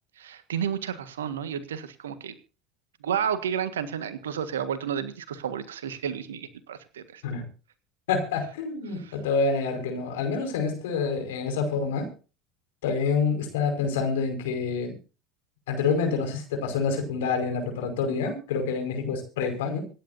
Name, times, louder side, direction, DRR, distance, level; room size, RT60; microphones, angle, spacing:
voice 1, 0.2-2.3 3.0-7.2 9.0-9.1, right 8 dB, 75° right, 12 dB, 1.6 m, -31 dB
voice 2, 8.1-12.1 12.8-14.9 15.7-19.8, left 5 dB, 70° left, 4 dB, 5.3 m, -27 dB
26.5 x 10.5 x 2.7 m, 0.35 s
figure-of-eight pair, 65°, 0 cm